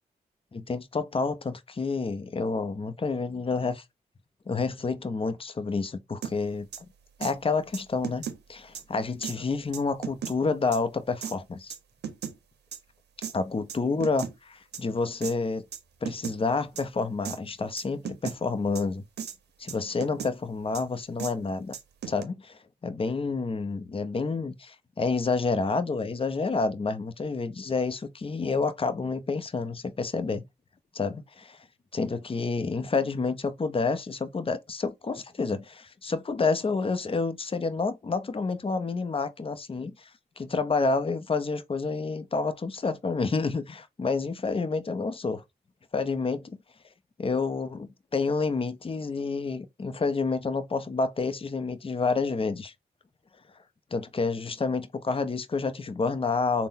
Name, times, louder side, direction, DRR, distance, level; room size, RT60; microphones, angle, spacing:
voice 1, 0.5-3.8 4.5-6.7 7.2-11.7 13.3-15.6 16.0-19.0 19.6-21.8 22.1-30.4 30.9-31.6 31.9-40.1 40.4-45.4 45.9-46.6 47.2-52.7 53.9-56.7, left 4 dB, 35° left, 0.6 m, -29 dB
sound 1, 6.2-6.3 6.7-6.8 7.2-7.3 7.7-8.4 8.8-8.9 9.2-9.4 9.7-10.3 10.7-10.8 11.2-11.3 11.7-12.4 12.7-12.8 13.2-13.3 13.7-14.3 14.7-14.8 15.2-15.3 15.7-15.8 16.1-16.4 16.8-16.9 17.3-17.4 17.8-18.4 18.8-18.9 19.2-19.4 19.7-20.3 20.7-20.8 21.2-21.3 21.7-22.2, right 8 dB, 85° right, 0.6 m, -35 dB
3.7 x 2.1 x 2.6 m
supercardioid pair, 40°, 17 cm